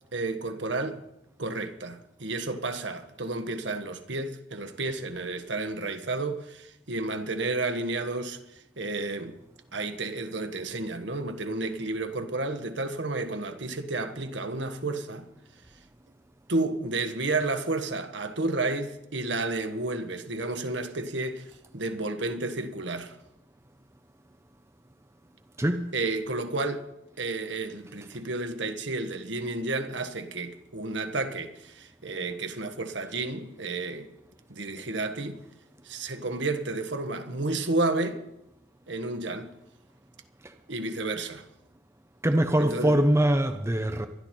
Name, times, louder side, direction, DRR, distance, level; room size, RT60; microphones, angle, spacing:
voice 1, 0.1-1.0 1.4-9.4 9.7-15.3 16.5-21.5 21.7-23.2 25.9-26.9 27.2-34.1 34.5-35.4 35.8-38.2 38.9-39.5 40.7-41.4 42.6-43.0, right 2 dB, 65° right, 1.4 m, -31 dB
voice 2, 25.6-25.9 40.4-40.5 42.2-44.1, right 1 dB, 15° right, 0.7 m, -23 dB
24.0 x 11.5 x 4.5 m
head